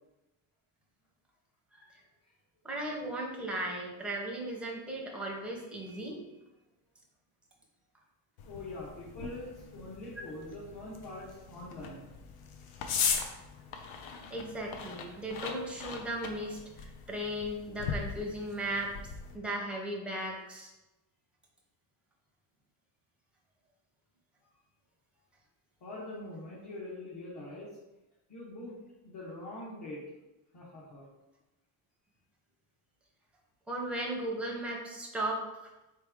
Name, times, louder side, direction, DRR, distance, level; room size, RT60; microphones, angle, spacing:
voice 1, 1.7-2.0 2.6-6.2 10.2-10.3 14.3-18.9 19.3-20.7 33.7-35.4, right 1 dB, ahead, -2 dB, 0.6 m, -36 dB
sound 1, 8.4-19.4, left 6 dB, 75° left, 0.7 m, -39 dB
voice 2, 8.4-12.1 13.5-13.7 25.8-27.8 28.3-30.0 30.5-31.1, left 1 dB, 50° left, -7 dB, 1.1 m, -44 dB
4.3 x 3.2 x 3.5 m, 1.0 s
wide cardioid pair, 170°, 50 cm